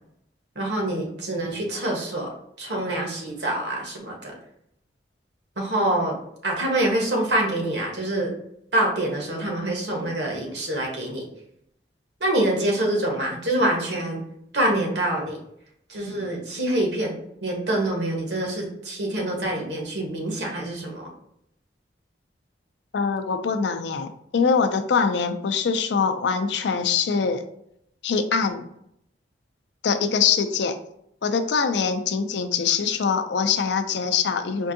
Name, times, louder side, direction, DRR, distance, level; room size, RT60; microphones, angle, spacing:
voice 1, 0.5-4.4 5.6-6.1 6.4-8.3 8.7-11.3 12.2-14.2 14.5-15.4 15.9-17.2 17.4-21.1, right 1 dB, 70° right, 0 dB, 1.1 m, -25 dB
voice 2, 22.9-27.4 28.0-28.7 29.8-30.8 31.2-34.7, left 6 dB, 75° left, 8 dB, 0.4 m, -23 dB
4.5 x 2.6 x 2.6 m, 0.75 s
head